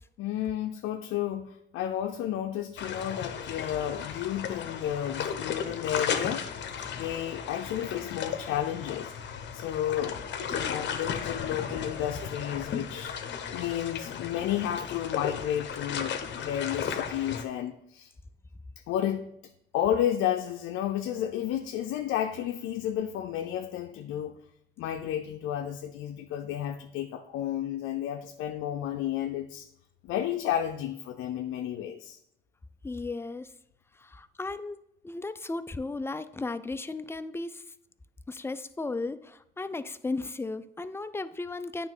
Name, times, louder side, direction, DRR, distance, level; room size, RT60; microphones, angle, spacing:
voice 1, 0.2-6.5 7.0-9.1 9.5-13.2 13.5-18.1 18.9-19.3 19.7-24.3 24.8-29.7 30.0-32.2, left 11 dB, 90° left, 5 dB, 0.5 m, -32 dB
sound 1, 2.8-17.4, left 7 dB, 65° left, 0.8 m, -35 dB
voice 2, 32.8-33.5 34.0-34.8 35.0-37.6 38.3-41.9, left 3 dB, 10° left, 12 dB, 0.4 m, -35 dB
8.9 x 3.2 x 6.1 m, 0.76 s
cardioid pair, 90°, 20 cm